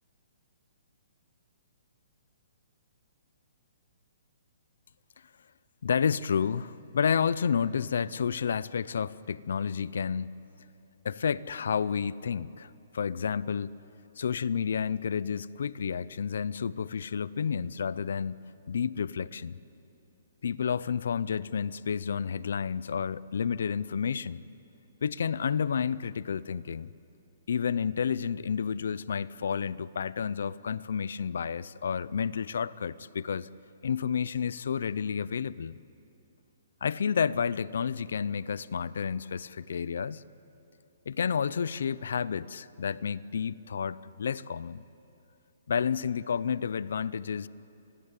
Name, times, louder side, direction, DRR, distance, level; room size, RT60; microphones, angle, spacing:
voice 1, 5.8-10.3 11.0-13.7 14.2-18.4 18.7-19.6 20.4-24.4 25.0-26.9 27.5-33.5 33.8-35.7 36.8-40.2 41.1-44.8 45.7-47.5, left 7 dB, 75° left, 0.6 m, -30 dB
26.5 x 18.5 x 8.4 m
hypercardioid pair, 160°, 0 cm